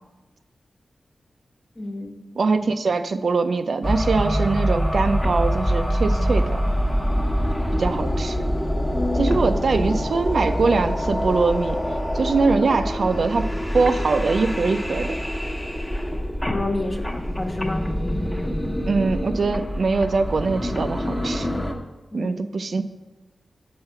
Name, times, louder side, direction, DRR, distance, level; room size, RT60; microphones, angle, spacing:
voice 1, 1.8-2.3 8.9-9.4 16.5-18.0 22.1-22.4, left 2 dB, 30° left, 3 dB, 1.2 m, -29 dB
voice 2, 2.4-6.6 7.7-8.4 9.2-11.8 12.1-13.5 13.7-15.2 18.8-21.5 22.1-22.8, right 4 dB, 65° right, 8 dB, 0.5 m, -22 dB
sound 1, 3.8-21.7, equal, 10° left, 1.1 m, -25 dB
7.7 x 5.7 x 5.8 m, 1.1 s
cardioid pair, 70°, 0 cm